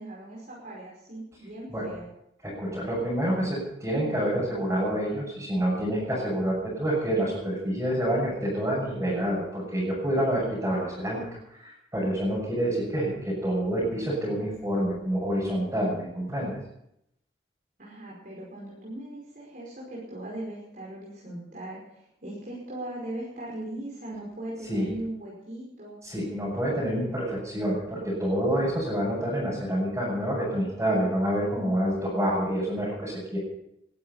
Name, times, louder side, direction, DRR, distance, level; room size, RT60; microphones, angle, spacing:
voice 1, 0.0-2.1 17.8-26.0, right 1 dB, 50° right, -4 dB, 5.2 m, -39 dB
voice 2, 2.4-11.3 11.6-16.6 24.7-24.9 26.0-33.4, right 1 dB, 15° right, -7 dB, 7.0 m, -27 dB
20.0 x 12.5 x 5.6 m, 0.78 s
head